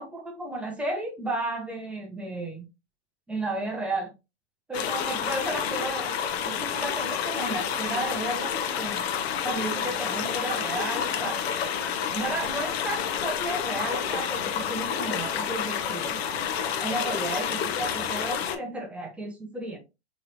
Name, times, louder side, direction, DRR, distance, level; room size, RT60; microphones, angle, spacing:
voice 1, 0.0-2.7 3.3-4.1 4.7-6.1 6.4-9.1 9.4-11.4 12.1-16.2 16.8-19.8, right 2 dB, 5° right, 0.3 m, -33 dB
sound 1, 4.7-18.6, left 8 dB, 60° left, 0.7 m, -29 dB
3.1 x 2.9 x 2.5 m
hypercardioid pair, 130°, 35 cm